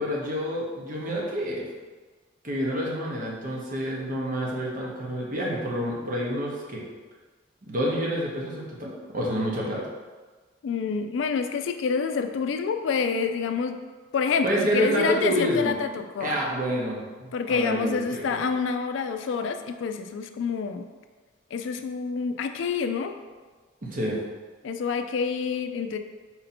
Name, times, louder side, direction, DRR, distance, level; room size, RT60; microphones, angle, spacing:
voice 1, 0.0-1.6 2.4-6.8 7.6-9.8 14.4-15.7 16.2-18.4 23.8-24.2, equal, 45° right, -3 dB, 0.9 m, -28 dB
voice 2, 10.6-13.8 14.1-16.4 17.3-20.9 21.5-23.1 24.6-26.0, left 5 dB, 70° left, 7 dB, 0.3 m, -27 dB
4.2 x 2.7 x 4.2 m, 1.4 s
head